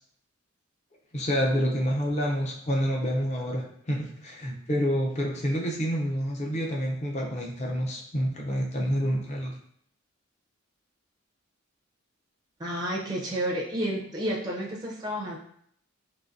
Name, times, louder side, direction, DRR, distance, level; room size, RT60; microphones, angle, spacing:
voice 1, 1.1-9.5, equal, 35° left, -1 dB, 0.6 m, -28 dB
voice 2, 12.6-15.4, right 1 dB, 20° right, -2 dB, 0.5 m, -30 dB
3.8 x 2.6 x 2.6 m, 0.68 s
head